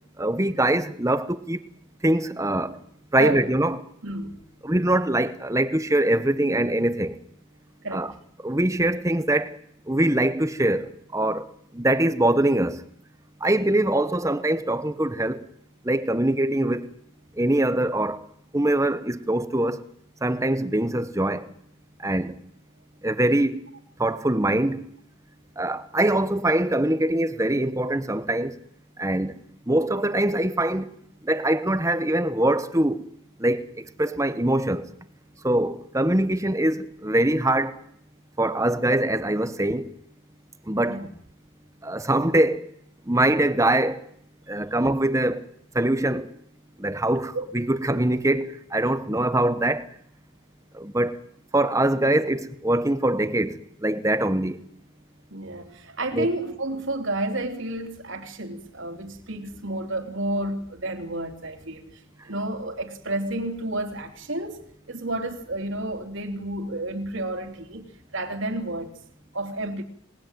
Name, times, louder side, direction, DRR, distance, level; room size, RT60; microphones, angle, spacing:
voice 1, 0.2-1.6 2.0-2.8 3.1-3.8 4.6-7.2 7.9-8.1 8.4-9.6 9.9-11.5 11.7-12.8 13.4-15.4 15.8-16.9 17.4-18.2 18.5-19.8 20.2-21.5 22.0-22.4 23.0-23.6 24.0-24.9 25.6-28.6 29.0-29.4 29.7-30.9 31.2-33.0 33.4-34.9 35.4-37.8 38.4-39.9 40.7-41.0 41.8-42.6 43.1-44.0 44.5-45.5 45.7-46.3 46.8-49.9 50.7-51.2 51.5-54.6 56.1-56.3, right 1 dB, 15° right, 1.1 m, -23 dB
voice 2, 4.0-4.4 7.8-8.1 40.9-41.1 47.3-47.5 55.3-61.9 62.3-64.6 64.9-67.9 68.1-68.9 69.3-69.8, right 1 dB, 70° right, 3.4 m, -30 dB
27.0 x 19.5 x 9.2 m
head